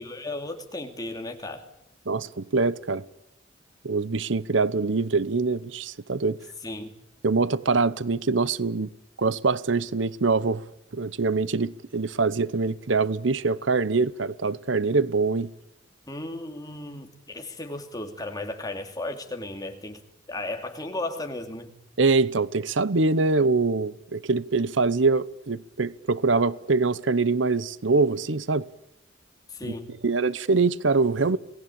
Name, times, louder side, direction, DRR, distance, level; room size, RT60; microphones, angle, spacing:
voice 1, 0.0-1.6 6.6-6.9 16.1-20.0 20.3-21.7 29.5-30.0, left 2 dB, 20° left, 2.9 m, -35 dB
voice 2, 2.1-3.0 3.8-6.4 7.2-8.9 9.2-10.6 10.9-15.5 22.0-28.7 29.6-29.7 30.0-31.4, right 3 dB, 80° right, 0.9 m, -24 dB
28.0 x 18.5 x 8.8 m
head